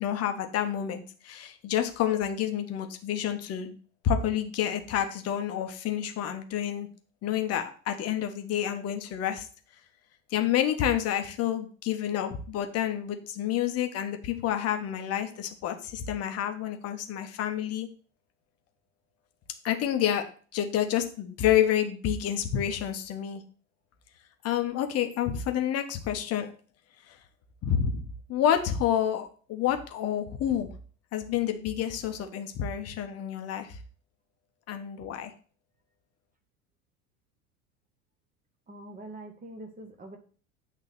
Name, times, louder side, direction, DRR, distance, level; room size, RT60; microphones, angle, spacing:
voice 1, 0.0-3.8 4.0-6.9 7.2-9.5 10.3-17.9 19.6-20.3 20.5-23.4 24.4-26.5 27.1-27.2 27.6-30.7 31.1-33.8 34.7-35.3, left 10 dB, 35° left, 6 dB, 1.2 m, -29 dB
voice 2, 38.7-40.2, right 1 dB, 20° right, 5 dB, 1.7 m, -44 dB
8.8 x 3.7 x 5.9 m, 0.41 s
figure-of-eight pair, 75°, 43 cm